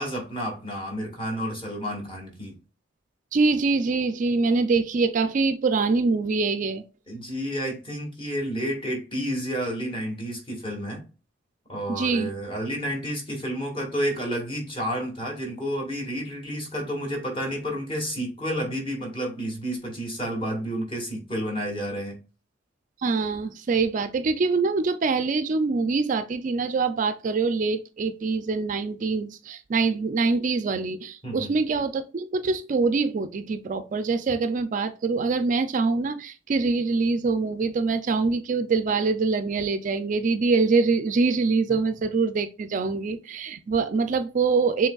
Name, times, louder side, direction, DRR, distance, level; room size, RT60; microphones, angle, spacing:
voice 1, 0.0-2.6 7.1-11.0 11.7-22.2 31.2-31.5, equal, 25° left, 1.7 m, -30 dB
voice 2, 3.3-6.8 11.9-12.3 23.0-44.9, right 4 dB, 40° right, 0.4 m, -24 dB
6.9 x 3.2 x 2.3 m
head